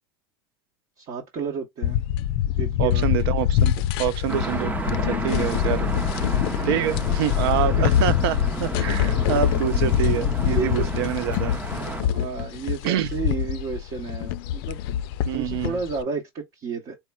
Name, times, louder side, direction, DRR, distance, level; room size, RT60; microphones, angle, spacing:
voice 1, 1.0-2.0 2.6-3.0 6.6-7.1 7.8-7.9 10.4-11.0 12.0-14.8 15.3-17.0, right 5 dB, 45° right, 1.0 m, -32 dB
sound 1, 1.8-16.0, left 11 dB, 70° left, 0.4 m, -24 dB
voice 2, 2.8-3.7 4.0-5.9 6.6-11.6 12.8-13.1 15.3-15.8, right 11 dB, 75° right, 0.5 m, -26 dB
sound 2, 4.3-12.0, right 3 dB, 15° right, 0.6 m, -32 dB
4.5 x 2.9 x 2.2 m
hypercardioid pair, 90°, 13 cm